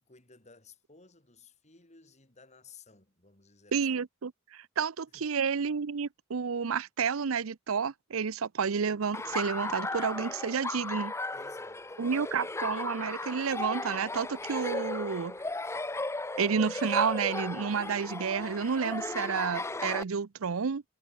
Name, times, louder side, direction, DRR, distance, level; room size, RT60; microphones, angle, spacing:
voice 1, 0.0-3.9 5.1-5.3 11.3-12.3, left 4 dB, 35° left, 4.1 m, -57 dB
voice 2, 3.7-11.1 12.0-15.3 16.4-20.8, right 6 dB, 80° right, 0.6 m, -30 dB
Laughter, 9.1-20.0, left 2 dB, 15° left, 0.8 m, -36 dB
head